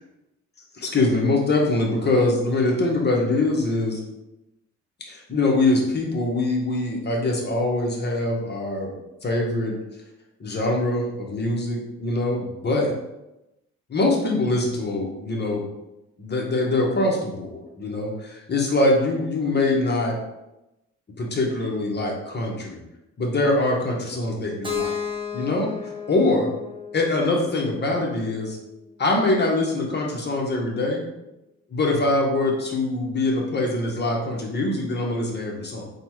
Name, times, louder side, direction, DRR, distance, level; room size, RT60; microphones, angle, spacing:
voice 1, 0.7-4.0 5.0-8.9 9.2-9.8 10.4-12.9 13.9-15.7 16.2-20.2 21.2-22.8 23.2-25.0 25.3-25.7 26.1-26.5 26.9-28.6 29.0-31.0 31.7-35.9, left 2 dB, 35° left, -1 dB, 1.2 m, -23 dB
Keyboard (musical), 24.6-28.5, left 6 dB, 15° right, 0.8 m, -33 dB
3.9 x 2.3 x 4.6 m, 0.93 s
cardioid pair, 90°, 30 cm